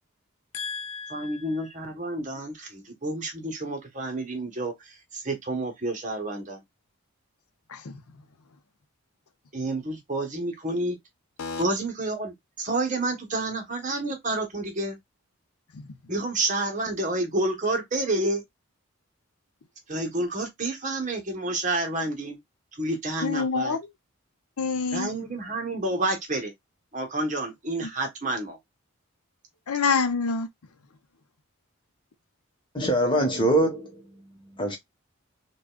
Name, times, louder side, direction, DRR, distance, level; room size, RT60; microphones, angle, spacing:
voice 1, 0.5-1.4 7.7-8.0 11.4-11.6 15.7-15.9 23.2-23.8 24.6-25.1 27.8-27.9 29.7-30.5, left 5 dB, 90° left, 0.7 m, -27 dB
voice 2, 1.1-6.6 9.5-11.0 11.6-15.0 16.1-18.4 19.9-22.4 22.7-23.8 24.9-26.5 26.9-28.6, right 2 dB, 35° right, 1.0 m, -29 dB
voice 3, 32.7-33.9 34.6-34.8, right 1 dB, 20° left, 1.1 m, -22 dB
4.9 x 2.3 x 2.2 m
head